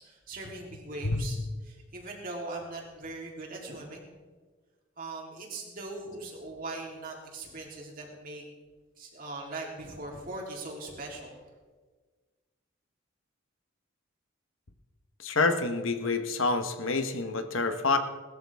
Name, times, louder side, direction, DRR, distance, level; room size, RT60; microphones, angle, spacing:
voice 1, 0.0-1.4 1.6-4.1 5.0-8.4 9.0-11.4, right 2 dB, 45° right, -1 dB, 3.4 m, -40 dB
voice 2, 15.2-18.0, left 3 dB, 85° left, 7 dB, 1.3 m, -27 dB
20.0 x 13.5 x 3.6 m, 1.4 s
head